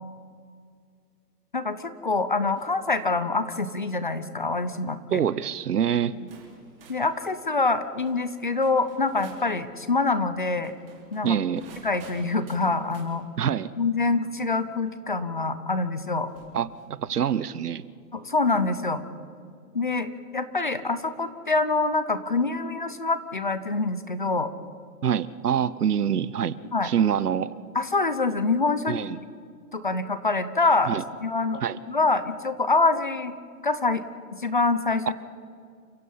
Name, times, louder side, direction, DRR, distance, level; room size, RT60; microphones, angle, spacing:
voice 1, 1.5-5.2 6.1-6.3 6.9-10.7 11.1-11.4 11.8-13.2 13.8-16.3 18.1-19.0 19.7-24.5 26.7-26.9 27.7-28.9 29.7-31.6 31.9-33.3 33.6-34.0 34.4-35.1, left 3 dB, 30° left, 12 dB, 0.7 m, -25 dB
sound 1, 2.6-2.9 3.4-3.7 4.5-4.8 5.7-5.8 6.3-9.5 10.5-13.1 14.9-15.0 16.2-17.0, right 4 dB, 35° right, 4.4 m, -52 dB
voice 2, 5.1-6.2 11.2-11.6 13.4-13.7 16.5-17.8 25.0-26.6 26.8-27.6 28.9-29.2 30.9-31.0 31.6-31.8, right 8 dB, 70° right, 18 dB, 0.9 m, -25 dB
29.5 x 15.5 x 5.6 m, 2.2 s
hypercardioid pair, 175°, 48 cm